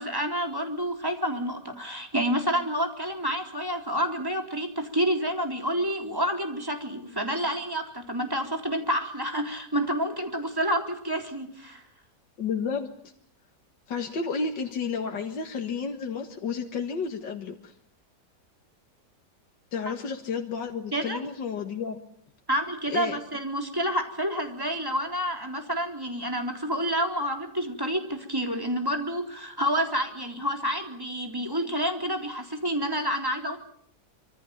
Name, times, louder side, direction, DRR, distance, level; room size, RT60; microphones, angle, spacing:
voice 1, 0.0-11.8 20.9-21.2 22.5-33.6, equal, 10° right, 3 dB, 3.9 m, -29 dB
voice 2, 12.4-12.9 13.9-17.7 19.7-22.0 22.9-23.2, left 5 dB, 85° left, 4 dB, 2.3 m, -31 dB
26.0 x 24.5 x 7.2 m, 0.64 s
omnidirectional pair, 1.9 m